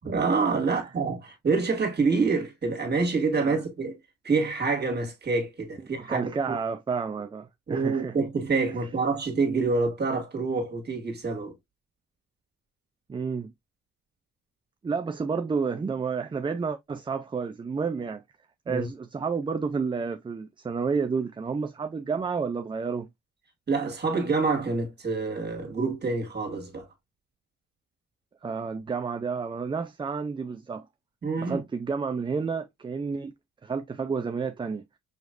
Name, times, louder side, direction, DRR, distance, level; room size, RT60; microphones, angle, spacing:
voice 1, 0.0-4.0 4.2-6.6 7.7-11.5 18.7-18.9 23.7-26.9 31.2-31.6, right 4 dB, 35° right, 2.0 m, -27 dB
voice 2, 6.1-8.1 13.1-13.5 14.8-18.2 18.7-23.1 28.4-30.9 31.4-33.3 33.6-34.8, right 5 dB, 15° right, 0.4 m, -30 dB
6.5 x 3.1 x 2.4 m
cardioid pair, 90°, 30 cm